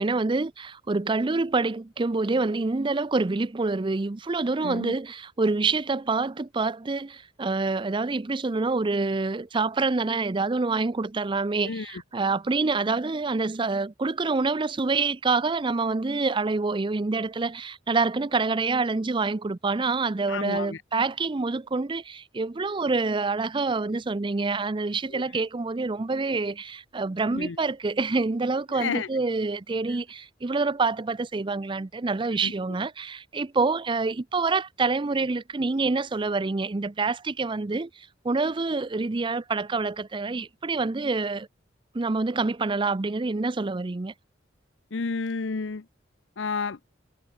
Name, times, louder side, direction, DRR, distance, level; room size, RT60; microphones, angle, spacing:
voice 1, 0.0-41.5 41.9-44.1, right 3 dB, 25° right, 0.5 m, -27 dB
voice 2, 4.6-4.9 11.6-12.0 20.3-20.8 25.1-25.2 27.3-27.6 28.7-29.1 32.4-32.5 44.9-45.8 46.4-46.8, left 4 dB, 75° left, 0.7 m, -31 dB
head